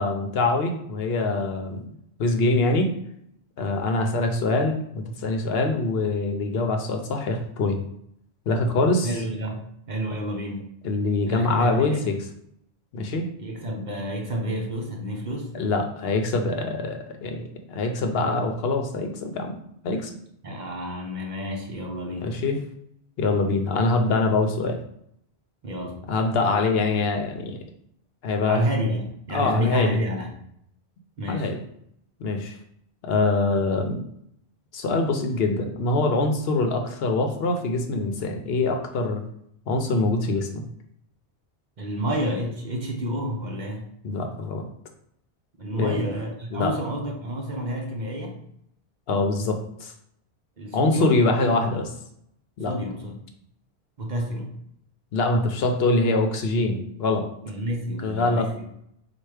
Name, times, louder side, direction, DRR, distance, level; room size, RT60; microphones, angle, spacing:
voice 1, 0.0-1.8 2.2-2.9 3.6-7.8 8.5-9.1 10.8-12.1 12.9-13.3 15.5-19.6 19.8-20.1 22.2-22.6 23.2-24.8 26.1-27.6 28.2-28.7 29.3-30.0 31.3-31.6 32.2-32.5 33.0-34.0 34.7-39.2 39.7-40.6 44.0-44.6 45.7-46.0 46.5-46.8 49.1-49.9 50.7-51.9 52.6-52.7 55.1-57.2 58.0-58.5, left 2 dB, 70° left, 4 dB, 0.8 m, -24 dB
voice 2, 9.0-10.6 11.3-12.1 13.4-15.5 20.4-22.4 25.6-26.0 28.5-30.3 31.2-31.5 41.8-43.9 45.6-48.4 50.6-51.2 52.6-53.2 54.0-54.5 57.5-58.7, equal, 50° right, 1 dB, 0.8 m, -29 dB
4.4 x 2.4 x 4.8 m, 0.72 s
omnidirectional pair, 1.1 m